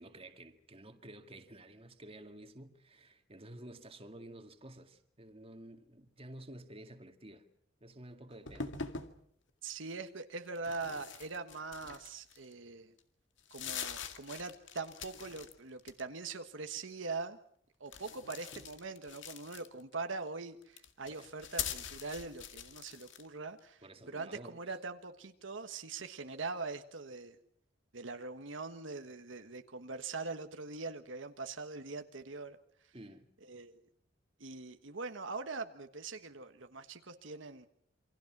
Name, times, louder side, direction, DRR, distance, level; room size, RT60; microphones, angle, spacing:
voice 1, 0.0-7.5 7.8-8.7 21.1-21.2 23.8-24.6 32.9-33.3, right 1 dB, 30° right, 2.1 m, -51 dB
sound 1, 8.5-9.1 10.5-12.5 13.0-13.1 13.4-15.5 15.8-16.3 17.9-19.9 20.6-23.3, left 7 dB, 70° left, 2.1 m, -43 dB
voice 2, 9.6-12.9 13.5-17.4 17.8-27.4 27.9-32.6 33.4-33.8 34.4-37.7, right 3 dB, 80° right, 1.5 m, -42 dB
28.5 x 24.0 x 6.1 m
head